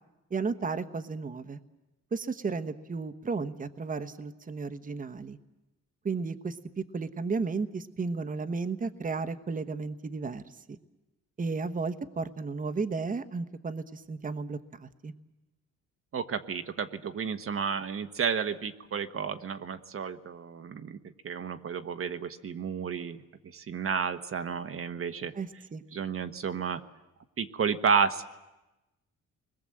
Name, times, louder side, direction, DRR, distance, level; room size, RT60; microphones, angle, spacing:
voice 1, 0.3-1.6 2.1-5.4 6.0-10.4 11.4-15.1 25.3-25.8, right 4 dB, 25° right, 9 dB, 1.1 m, -33 dB
voice 2, 16.1-21.0 21.2-23.2 23.5-25.3 25.9-26.8 27.4-28.2, right 6 dB, 45° right, 8 dB, 1.1 m, -31 dB
29.5 x 21.0 x 7.7 m, 1.0 s
cardioid pair, 90°, 30 cm